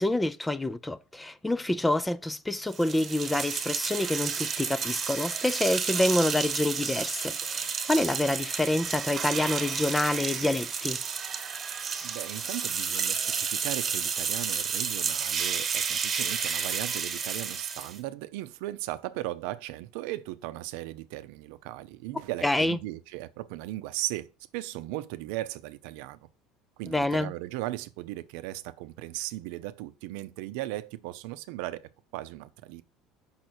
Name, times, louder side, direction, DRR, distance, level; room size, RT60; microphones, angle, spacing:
voice 1, 0.0-11.0 22.4-22.8 26.9-27.3, left 1 dB, 10° left, 0.4 m, -27 dB
sound 1, 2.7-18.0, right 6 dB, 30° right, 1.3 m, -31 dB
voice 2, 12.0-24.3 24.5-26.2 26.8-32.8, right 16 dB, 80° right, 0.6 m, -37 dB
6.3 x 5.7 x 4.4 m
cardioid pair, 130°, 0 cm